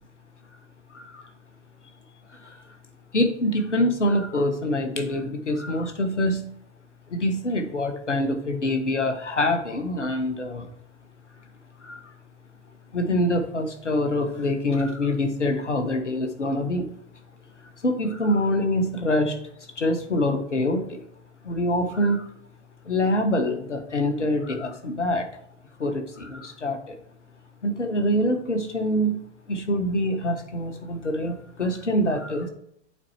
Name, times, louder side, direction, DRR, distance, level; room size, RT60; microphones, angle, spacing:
voice 1, 0.9-1.3 2.3-2.6 3.1-6.4 7.1-10.7 11.8-12.1 12.9-16.9 17.8-19.4 19.8-21.0 21.4-22.3 22.8-25.3 25.8-27.0 27.6-32.5, left 1 dB, 90° left, 6 dB, 1.3 m, -25 dB
8.7 x 4.3 x 3.2 m, 0.72 s
figure-of-eight pair, 105°, 35 cm